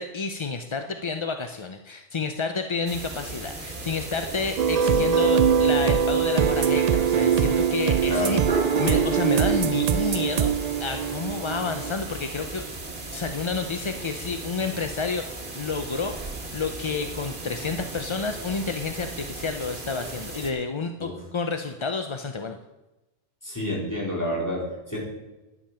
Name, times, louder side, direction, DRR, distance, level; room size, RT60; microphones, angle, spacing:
voice 1, 0.0-8.4 8.8-10.5 10.8-16.1 16.5-22.6, left 4 dB, 35° left, 6 dB, 0.5 m, -30 dB
sound 1, 2.9-20.5, right 2 dB, 45° right, 1.9 m, -35 dB
sound 2, 4.6-11.9, right 7 dB, 85° right, 0.3 m, -22 dB
voice 2, 8.1-8.4 21.0-21.1 23.4-25.0, left 1 dB, 15° left, -5 dB, 4.3 m, -29 dB
11.0 x 10.5 x 5.7 m, 1.0 s
omnidirectional pair, 1.2 m